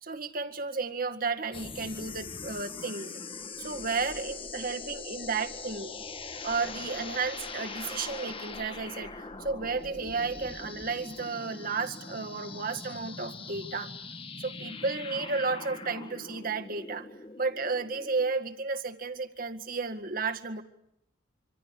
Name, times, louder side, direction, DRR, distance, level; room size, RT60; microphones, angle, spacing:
voice 1, 0.0-3.2 3.6-6.0 6.4-9.1 9.4-13.9 14.4-17.1 17.4-20.6, right 4 dB, 50° right, 6 dB, 1.9 m, -33 dB
sound 1, 1.5-18.3, left 4 dB, 30° left, 1.5 m, -42 dB
26.5 x 25.5 x 8.5 m, 0.76 s
head